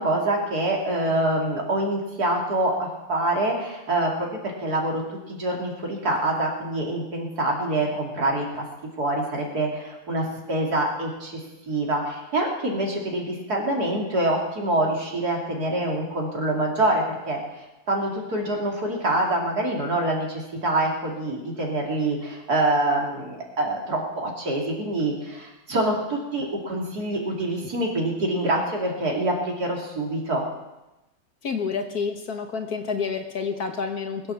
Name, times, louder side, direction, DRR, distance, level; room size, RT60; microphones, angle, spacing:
voice 1, 0.0-5.0 5.3-8.6 9.0-11.4 11.7-30.5, right 1 dB, 55° right, -1 dB, 3.4 m, -25 dB
voice 2, 31.4-34.3, left 5 dB, 60° left, 5 dB, 1.7 m, -29 dB
20.5 x 8.5 x 7.2 m, 1.0 s
omnidirectional pair, 2.0 m